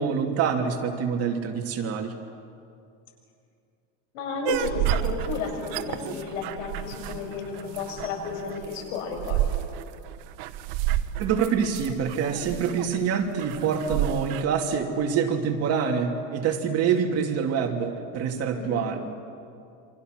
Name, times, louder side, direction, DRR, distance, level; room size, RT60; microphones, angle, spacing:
voice 1, 0.0-2.1 11.2-19.0, right 6 dB, 40° right, 2 dB, 2.8 m, -26 dB
voice 2, 4.1-9.5 18.5-18.9, left 4 dB, 85° left, 2 dB, 7.0 m, -33 dB
sound 1, 4.4-14.4, right 13 dB, 65° right, 1.1 m, -30 dB
Bowed string instrument, 4.6-8.8, left 4 dB, 55° left, 5.6 m, -46 dB
28.0 x 25.5 x 6.6 m, 2.5 s
supercardioid pair, 145°, 37 cm